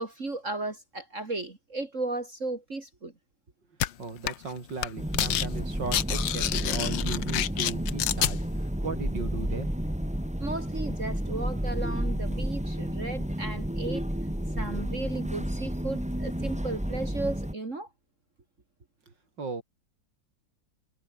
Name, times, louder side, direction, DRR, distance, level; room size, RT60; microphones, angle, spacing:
voice 1, 0.0-3.1 10.4-14.0 14.6-17.9, right 2 dB, 40° right, 3.4 m, -35 dB
sound 1, 3.8-3.9 4.3-4.5 4.8-5.5 5.7-8.3, left 12 dB, 80° left, 1.6 m, -28 dB
voice 2, 4.0-9.7 19.4-19.6, right 4 dB, 75° right, 4.6 m, -37 dB
sound 2, 5.0-17.5, equal, 5° right, 2.4 m, -31 dB
omnidirectional pair, 2.0 m